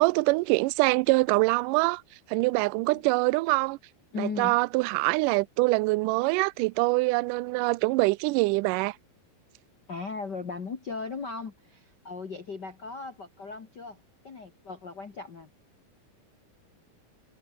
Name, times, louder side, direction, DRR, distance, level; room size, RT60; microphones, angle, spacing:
voice 1, 0.0-2.0 2.3-3.8 4.2-9.0, right 24 dB, 80° right, 2.0 m, -24 dB
voice 2, 4.1-4.6 9.9-15.5, left 4 dB, 40° left, 1.9 m, -37 dB
omnidirectional pair, 4.1 m